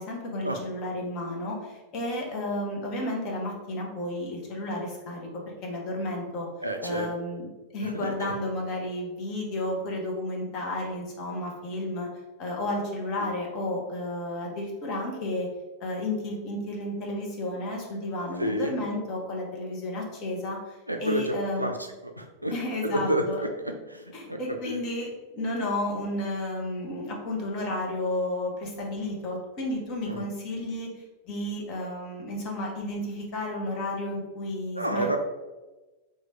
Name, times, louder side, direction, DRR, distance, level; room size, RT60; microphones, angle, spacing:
voice 1, 0.0-5.3 5.6-6.5 6.8-7.5 7.7-12.1 12.4-15.5 15.8-21.7 22.5-23.4 24.1-30.9 31.3-35.2, left 1 dB, 40° left, -1 dB, 1.0 m, -32 dB
voice 2, 6.6-7.1 7.8-8.3 13.2-13.3 18.4-18.8 20.9-21.7 22.0-22.5 22.8-23.5 23.9-24.4 24.6-24.8 30.1-30.2 34.7-35.2, right 1 dB, 85° right, 4 dB, 0.4 m, -30 dB
3.0 x 2.4 x 4.2 m, 1.2 s
figure-of-eight pair, 90°, 0 cm